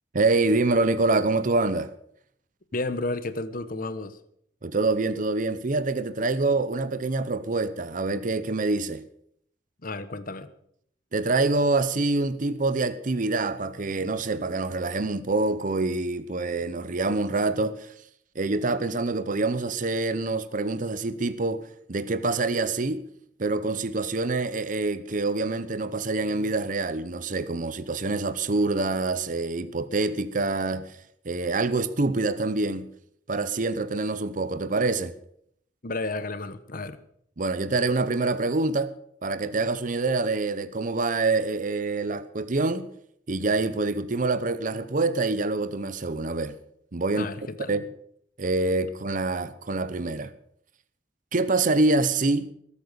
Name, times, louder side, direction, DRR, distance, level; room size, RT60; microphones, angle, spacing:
voice 1, 0.1-1.9 4.6-9.0 11.1-17.9 18.3-21.6 21.9-23.0 23.4-31.0 31.2-32.9 33.3-35.1 37.4-38.9 39.2-42.9 43.3-46.6 46.9-47.3 47.7-47.8 48.4-50.3 51.3-52.5, right 3 dB, 45° right, 0.8 m, -26 dB
voice 2, 2.7-4.2 9.8-10.5 35.8-37.0 47.1-47.8, left 2 dB, 50° left, 1.1 m, -32 dB
20.5 x 8.5 x 6.8 m
head